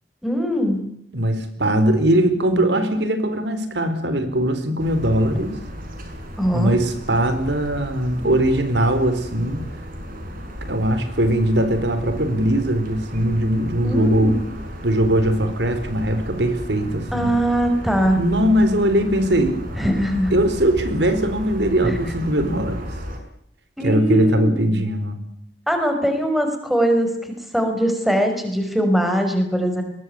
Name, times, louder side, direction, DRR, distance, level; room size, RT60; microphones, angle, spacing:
voice 1, 0.2-0.9 6.4-6.7 13.8-14.4 17.1-18.2 19.8-20.4 21.8-22.0 23.8-24.8 25.7-29.8, equal, ahead, 5 dB, 5.4 m, -21 dB
voice 2, 1.1-5.5 6.5-9.6 10.7-14.3 14.8-17.3 18.2-19.6 20.3-22.8 23.8-25.2, right 1 dB, 75° right, 9 dB, 4.3 m, -20 dB
sound 1, 4.8-23.2, equal, 55° right, 6.6 m, -34 dB
22.0 x 19.0 x 9.7 m, 0.70 s
head